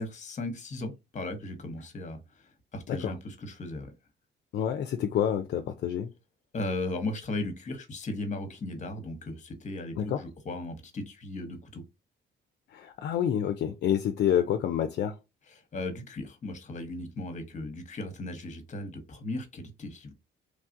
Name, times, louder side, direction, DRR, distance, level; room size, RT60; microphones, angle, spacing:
voice 1, 0.0-2.2 2.7-3.9 6.5-11.8 15.5-20.1, left 2 dB, 35° left, 0.9 m, -36 dB
voice 2, 4.5-6.1 10.0-10.2 12.7-15.2, left 9 dB, 60° left, 0.4 m, -28 dB
3.2 x 2.3 x 2.5 m
cardioid pair, 90°, 20 cm